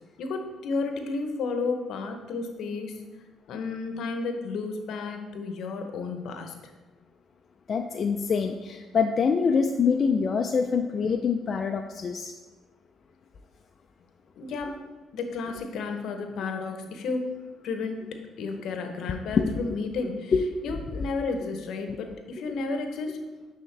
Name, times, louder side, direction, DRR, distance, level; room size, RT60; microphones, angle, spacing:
voice 1, 0.2-3.0 3.5-6.7 14.4-14.8 15.1-17.4 17.6-18.0 18.4-20.3 20.6-23.3, left 4 dB, 70° left, 5 dB, 0.8 m, -32 dB
voice 2, 7.7-12.3 19.4-19.6 20.3-20.4, left 5 dB, 50° left, 4 dB, 0.4 m, -25 dB
10.0 x 3.6 x 3.3 m, 1.2 s
supercardioid pair, 70°, 0 cm